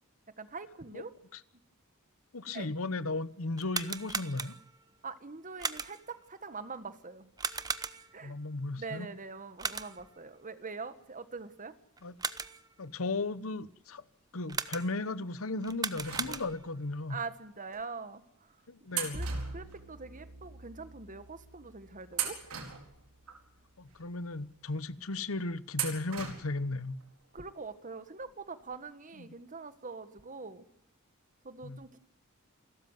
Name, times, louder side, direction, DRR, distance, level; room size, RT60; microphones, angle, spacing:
voice 1, 0.4-1.1 2.5-2.7 5.0-7.3 8.1-8.3 8.8-11.7 17.1-18.5 19.1-19.3 19.5-22.4 27.3-30.7 31.4-32.0, right 4 dB, 40° right, 1.7 m, -43 dB
voice 2, 2.3-4.6 8.2-9.1 12.0-12.2 12.8-14.0 14.3-17.2 18.7-19.2 23.8-27.0 29.2-29.3 31.6-31.8, left 2 dB, 70° left, 1.1 m, -36 dB
sound 1, 3.5-4.8 5.6-6.2 7.4-8.3 9.6-10.2 12.0-12.7 14.5-15.1 15.6-16.8, right 5 dB, 20° right, 0.9 m, -37 dB
sound 2, 16.0-16.9 17.7-17.8 18.9-20.3 20.6-20.7 21.5-21.7 22.1-23.4 23.9-24.0 25.7-26.7 27.0-27.1 28.3-28.4 28.7-28.8, right 9 dB, 90° right, 4.5 m, -39 dB
Bowed string instrument, 19.1-23.7, right 1 dB, 75° right, 4.6 m, -45 dB
28.5 x 13.5 x 9.2 m
head